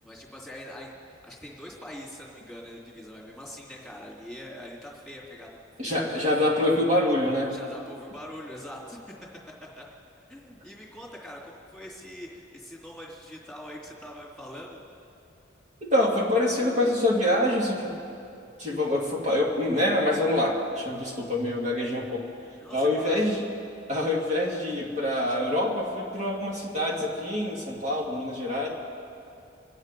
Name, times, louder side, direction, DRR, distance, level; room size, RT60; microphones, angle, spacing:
voice 1, 0.0-6.3 7.5-9.0 9.8-9.9 10.3-14.8 22.6-23.2, equal, ahead, -4 dB, 2.8 m, -43 dB
voice 2, 5.8-7.5 15.8-18.0 18.6-22.3 22.7-23.4 23.9-28.7, left 1 dB, 40° right, -3 dB, 1.9 m, -25 dB
26.5 x 9.7 x 5.3 m, 2.6 s
head